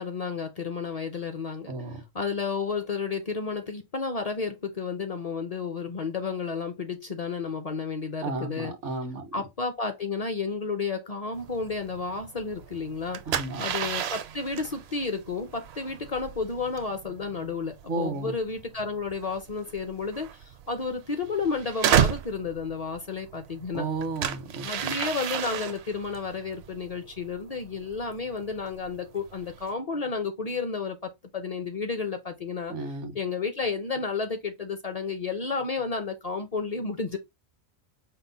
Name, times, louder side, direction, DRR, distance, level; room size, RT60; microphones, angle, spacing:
voice 1, 0.0-1.7 2.1-8.7 9.3-23.9 24.6-32.7 33.1-37.2, left 4 dB, 45° left, 0.6 m, -32 dB
voice 2, 1.7-2.0 8.2-9.3 13.3-13.7 17.9-18.3 23.7-24.9 32.7-33.2, right 3 dB, 85° right, 1.4 m, -33 dB
sound 1, 11.3-29.7, right 9 dB, 70° right, 0.8 m, -33 dB
5.3 x 2.1 x 4.0 m
omnidirectional pair, 1.2 m